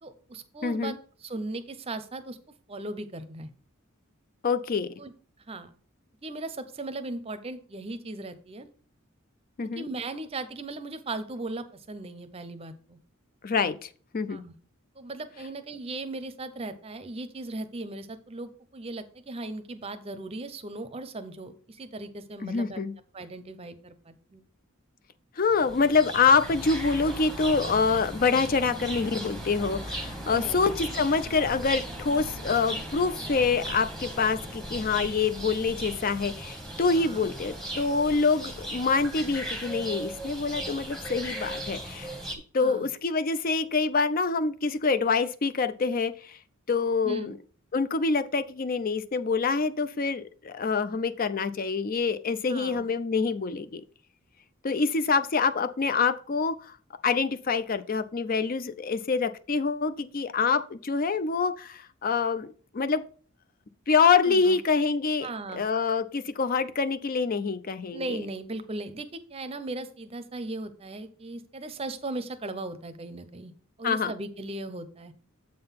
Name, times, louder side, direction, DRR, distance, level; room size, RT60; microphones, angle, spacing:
voice 1, 0.0-0.9 1.2-2.4 2.7-3.5 5.0-5.1 5.4-5.7 6.2-8.7 9.6-13.0 14.3-14.5 15.0-22.8 23.1-24.4 30.3-30.7 37.0-37.3 42.6-42.9 47.0-47.4 52.5-52.9 64.2-64.6 65.2-65.6 67.9-73.5 73.8-75.1, right 2 dB, 30° right, 10 dB, 0.7 m, -37 dB
voice 2, 0.6-1.0 4.4-4.9 9.6-9.9 13.4-13.9 14.1-14.4 22.4-22.9 25.4-42.1 42.5-46.1 46.7-47.4 47.7-53.8 54.6-56.6 57.0-63.0 63.9-68.2 73.8-74.1, left 4 dB, 40° left, 12 dB, 0.5 m, -26 dB
sound 1, 25.4-42.4, right 1 dB, 5° left, 1.1 m, -37 dB
7.6 x 3.8 x 5.7 m, 0.43 s
head